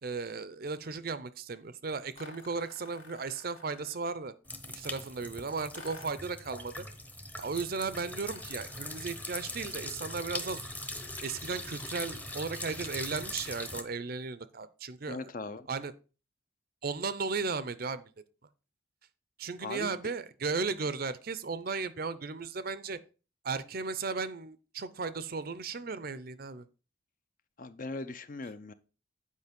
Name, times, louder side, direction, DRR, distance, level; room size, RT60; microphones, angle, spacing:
voice 1, 0.0-4.3 4.7-6.8 7.3-10.7 11.2-15.3 15.7-15.9 16.8-18.0 19.4-23.0 23.4-26.7, right 4 dB, 50° right, 15 dB, 0.6 m, -35 dB
sound 1, 2.2-4.1 5.7-6.3 8.1-9.2, left 3 dB, 60° left, 1.9 m, -52 dB
sound 2, 4.5-13.8, left 1 dB, 10° left, 0.8 m, -41 dB
voice 2, 15.1-15.7 19.6-19.9 27.6-28.7, left 3 dB, 40° left, 12 dB, 0.6 m, -39 dB
8.3 x 5.1 x 5.1 m, 0.34 s
head